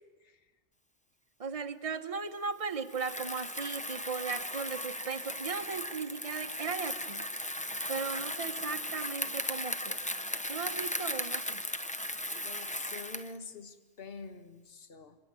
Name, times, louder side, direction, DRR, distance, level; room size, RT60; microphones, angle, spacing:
voice 1, 1.4-7.2 7.9-10.0 10.5-11.6, right 5 dB, 30° right, 8 dB, 1.3 m, -37 dB
Bicycle, 2.9-13.4, left 1 dB, 5° left, 0.8 m, -37 dB
voice 2, 12.4-15.2, left 4 dB, 55° left, 9 dB, 1.8 m, -46 dB
27.0 x 26.0 x 7.8 m, 1.2 s
omnidirectional pair, 1.2 m